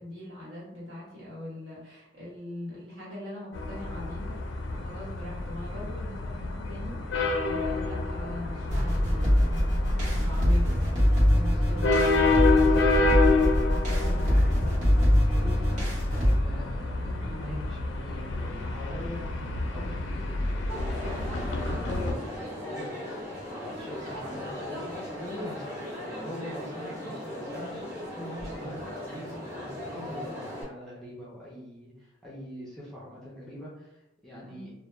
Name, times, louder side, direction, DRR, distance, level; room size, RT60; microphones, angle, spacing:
voice 1, 0.0-4.4 4.7-12.4 34.4-34.7, left 1 dB, 65° right, -7 dB, 1.2 m, -41 dB
sound 1, 3.5-22.1, left 3 dB, 90° left, 0.4 m, -29 dB
sound 2, 8.7-16.3, equal, 40° right, 1.0 m, -23 dB
voice 2, 12.6-14.8 15.1-19.3 19.7-22.3 22.6-23.0 23.5-25.8 26.2-34.7, equal, ahead, -7 dB, 0.5 m, -43 dB
Crowd, 20.7-30.6, left 1 dB, 15° right, 0.9 m, -37 dB
2.2 x 2.0 x 3.0 m, 0.86 s
head